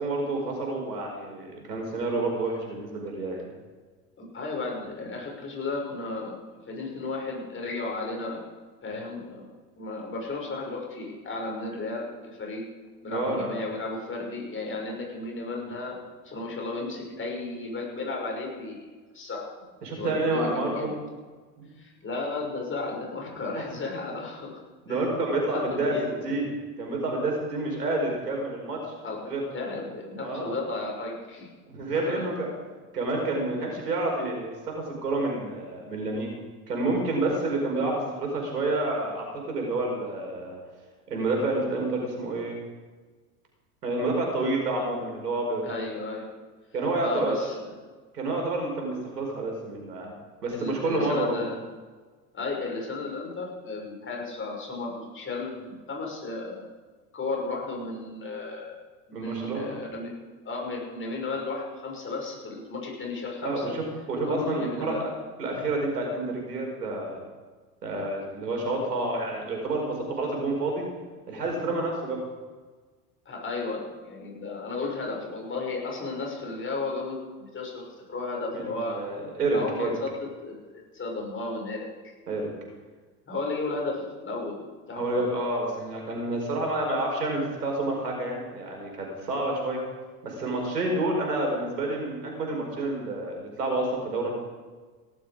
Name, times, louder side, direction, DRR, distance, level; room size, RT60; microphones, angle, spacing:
voice 1, 0.0-3.5 13.1-13.6 19.8-21.0 21.6-21.7 23.5-23.6 24.8-25.9 26.2-26.5 26.8-28.8 29.2-29.4 30.2-30.5 31.7-32.5 32.9-36.4 36.7-40.6 41.1-42.6 43.8-45.6 46.7-47.5 48.1-50.1 50.4-51.4 59.1-59.8 63.4-63.8 64.1-65.1 65.4-67.2 67.8-70.8 71.3-72.2 78.5-80.0 82.3-82.5 84.9-89.8 90.2-94.3, right 2 dB, 85° right, 0 dB, 5.1 m, -29 dB
voice 2, 4.2-8.4 8.8-9.5 9.8-12.6 13.0-16.0 16.2-18.8 19.1-19.5 20.0-20.9 21.8-24.6 24.9-25.2 25.5-26.2 29.0-31.5 31.8-32.3 45.6-46.3 47.0-47.5 50.5-51.6 52.3-56.7 57.1-58.8 59.1-60.1 60.4-63.8 64.2-65.0 73.3-79.1 79.5-80.1 80.4-80.5 80.9-82.1 83.3-85.0, left 3 dB, 25° left, -1 dB, 6.0 m, -34 dB
17.5 x 12.5 x 5.0 m, 1.4 s
hypercardioid pair, 85°, 47 cm